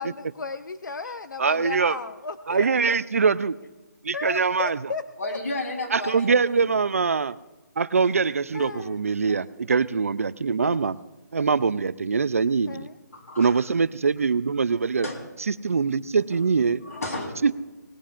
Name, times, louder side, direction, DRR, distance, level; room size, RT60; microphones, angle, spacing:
voice 1, 0.0-3.0 4.1-5.4 8.5-9.0 9.3-9.6 10.6-10.8 12.7-13.0, left 4 dB, 85° left, 11 dB, 0.7 m, -35 dB
voice 2, 1.4-2.0 2.5-3.6 4.0-4.8 5.9-7.4 7.8-11.0 11.3-12.9 13.4-15.1 15.6-16.8 17.4-17.6, right 5 dB, 50° right, 16 dB, 0.4 m, -23 dB
voice 3, 5.2-6.3 6.6-6.7 13.1-13.7 15.0-15.2 16.3-16.4 16.7-17.6, left 2 dB, 50° left, 1 dB, 3.9 m, -33 dB
20.0 x 19.5 x 2.5 m, 1.2 s
hypercardioid pair, 175°, 10 cm